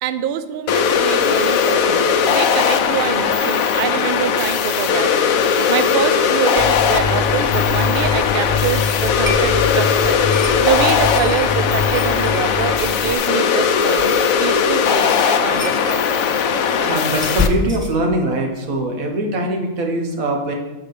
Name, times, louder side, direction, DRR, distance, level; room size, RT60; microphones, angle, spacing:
voice 1, 0.0-10.2 10.6-14.1 14.4-16.1, right 9 dB, 65° right, 12 dB, 0.5 m, -25 dB
sound 1, 0.7-17.5, left 7 dB, 80° left, 1.0 m, -18 dB
sound 2, 6.6-13.2, left 5 dB, 45° left, 0.6 m, -25 dB
sound 3, 7.2-18.0, left 2 dB, 10° right, 0.6 m, -31 dB
voice 2, 16.8-20.5, right 1 dB, 90° right, 2 dB, 1.6 m, -22 dB
6.5 x 4.9 x 6.6 m, 1.1 s
omnidirectional pair, 1.4 m